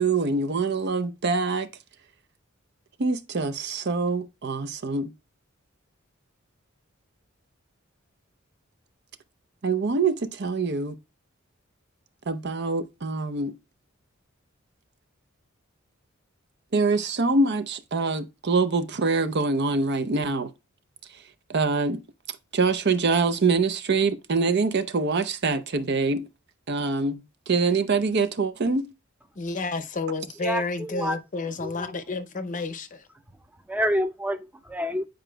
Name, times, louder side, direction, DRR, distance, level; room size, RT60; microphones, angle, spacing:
voice 1, 0.0-1.7 3.0-5.1 9.6-10.9 12.3-13.6 16.7-20.5 21.5-22.0 22.5-26.3 26.7-28.9, right 4 dB, 55° right, 0.7 m, -24 dB
voice 2, 29.4-33.1, left 3 dB, 40° left, 0.7 m, -31 dB
voice 3, 30.4-31.9 33.7-35.1, equal, 10° right, 0.6 m, -29 dB
9.3 x 5.0 x 2.3 m
head